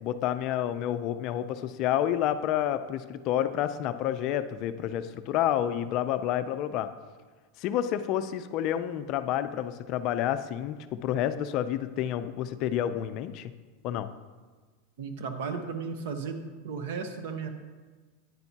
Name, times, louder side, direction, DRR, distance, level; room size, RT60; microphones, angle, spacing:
voice 1, 0.0-6.9 7.6-13.5 13.8-14.1, left 11 dB, 40° left, 11 dB, 0.4 m, -29 dB
voice 2, 15.0-17.5, right 5 dB, 65° right, 7 dB, 1.0 m, -35 dB
9.6 x 8.9 x 2.8 m, 1.4 s
supercardioid pair, 150°, 0 cm